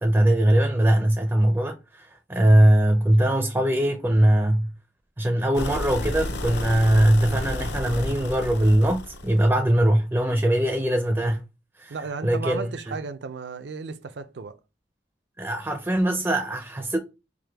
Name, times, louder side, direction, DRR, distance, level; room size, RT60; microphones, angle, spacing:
voice 1, 0.0-4.7 5.2-11.4 11.8-12.0 12.2-12.9 15.4-17.0, right 1 dB, 10° right, 0.4 m, -21 dB
sound 1, 5.5-9.5, left 2 dB, 65° left, 0.6 m, -32 dB
voice 2, 11.9-14.6, right 4 dB, 70° right, 0.5 m, -34 dB
4.8 x 2.1 x 3.4 m
head